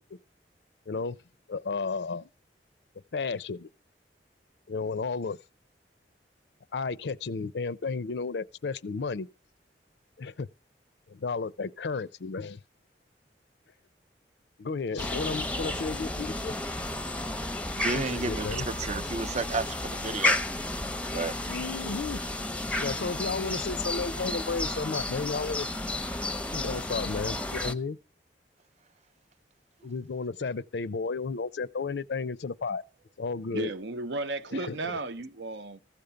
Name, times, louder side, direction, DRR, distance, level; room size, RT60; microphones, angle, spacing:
voice 1, 0.9-1.2 1.5-2.3 3.1-3.7 4.7-5.4 6.7-9.3 10.2-10.5 11.1-12.6 14.6-16.5 17.9-18.7 21.5-22.2 22.8-25.7 26.5-28.0 29.8-32.8 33.2-33.7 34.5-35.0, left 4 dB, 70° left, 0.5 m, -33 dB
sound 1, 15.0-27.7, left 2 dB, 5° left, 0.6 m, -32 dB
voice 2, 17.8-20.4 21.1-21.4, right 4 dB, 40° right, 0.5 m, -32 dB
voice 3, 33.5-35.8, right 2 dB, 75° right, 0.8 m, -34 dB
15.0 x 5.2 x 6.9 m
head